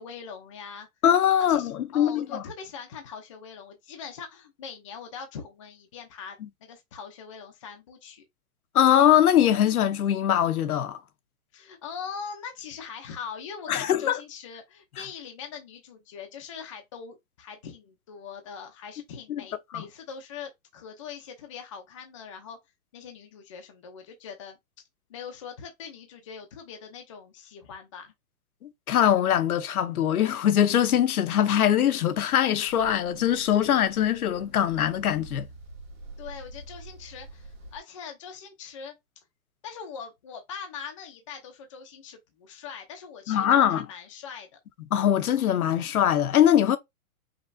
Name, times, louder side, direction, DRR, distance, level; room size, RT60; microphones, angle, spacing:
voice 1, 0.0-0.9 1.5-8.2 11.5-22.6 22.9-24.6 25.1-28.1 36.2-39.2 39.6-44.6, left 6 dB, 20° left, 0.6 m, -42 dB
voice 2, 1.0-2.4 8.7-11.0 13.7-14.2 19.3-19.4 19.7-19.8 28.6-35.5 43.3-43.8 44.9-46.8, left 10 dB, 80° left, 0.9 m, -22 dB
sound 1, 32.7-37.8, right 2 dB, 15° right, 1.1 m, -46 dB
5.4 x 3.1 x 2.6 m
hypercardioid pair, 170°, 43 cm